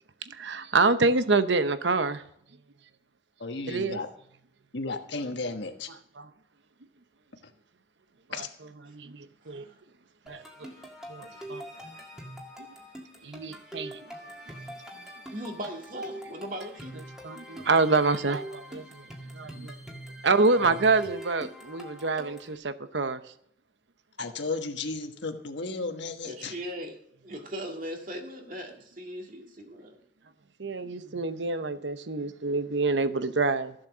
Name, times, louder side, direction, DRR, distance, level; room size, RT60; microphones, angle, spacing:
voice 1, 0.2-2.2 3.7-4.0 6.2-6.3 8.8-9.6 10.3-10.4 11.1-11.6 13.2-14.0 17.2-19.1 19.3-19.7 20.2-23.2 30.6-33.7, right 3 dB, 70° right, 0.8 m, -26 dB
voice 2, 3.4-4.1 4.7-5.9 8.3-8.5 20.7-20.8 24.2-26.5, left 3 dB, 70° left, 1.3 m, -34 dB
sound 1, 10.3-22.6, right 1 dB, 5° right, 1.8 m, -44 dB
voice 3, 14.4-14.7 15.3-17.0 20.5-20.8 26.2-27.0 27.2-30.0, equal, 45° right, 2.0 m, -39 dB
14.5 x 7.7 x 6.2 m
head